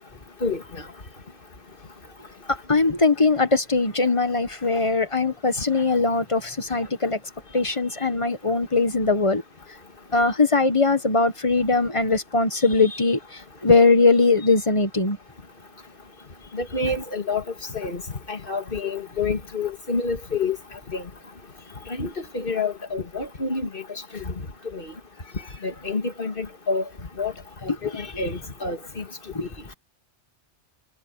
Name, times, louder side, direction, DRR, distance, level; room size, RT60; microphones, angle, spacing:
voice 1, 0.4-0.8 16.5-17.4 17.7-18.0 18.3-20.6 20.9-21.0 21.9-23.8 24.1-24.3 24.7-24.9 25.6-26.8 27.2-27.3 27.6-29.0 29.4-29.5, left 4 dB, 50° left, 2.3 m, -28 dB
voice 2, 2.5-7.2 7.5-9.4 10.1-15.2 29.3-29.5, left 3 dB, 25° left, 1.4 m, -21 dB
omnidirectional pair, 1.2 m